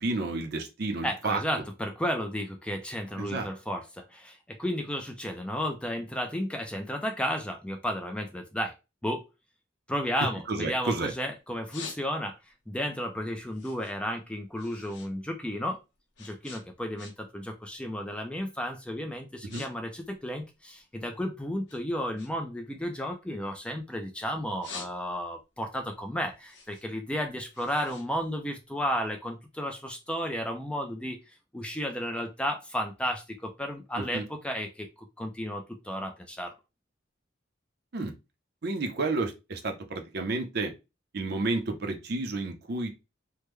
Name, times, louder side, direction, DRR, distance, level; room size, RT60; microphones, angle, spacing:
voice 1, 0.0-1.4 3.2-3.5 10.5-11.1 19.5-19.6 34.0-34.3 37.9-38.1 38.6-40.7 41.1-42.9, right 3 dB, 55° right, 0.6 m, -31 dB
voice 2, 1.0-8.7 9.0-9.2 9.9-12.4 12.7-15.8 16.2-31.2 31.5-36.5, equal, 5° left, 0.4 m, -33 dB
sound 1, 10.4-11.1 11.4-12.5 12.9-15.1 15.4-17.4 17.7-18.1 18.7-18.8 19.2-19.7 19.9-21.2 21.7-24.0 24.4-25.4 25.8-29.0, left 5 dB, 70° left, 0.8 m, -47 dB
3.4 x 2.1 x 3.1 m
head